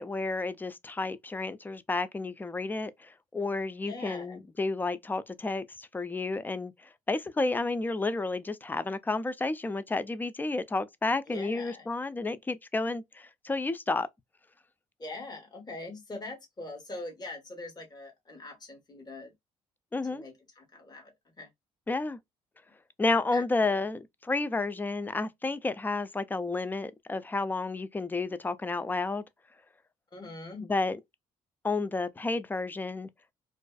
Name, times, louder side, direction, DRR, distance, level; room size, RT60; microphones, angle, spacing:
voice 1, 0.0-6.7 7.1-14.1 19.9-20.2 21.9-22.2 23.0-29.2 30.7-31.0 31.6-33.1, left 3 dB, 15° left, 0.3 m, -31 dB
voice 2, 3.9-4.4 11.3-11.9 15.0-19.3 20.1-21.1 21.4-21.5 23.3-23.8 30.1-30.7, left 2 dB, 30° left, 1.2 m, -42 dB
2.4 x 2.3 x 2.2 m
supercardioid pair, 70°, 14 cm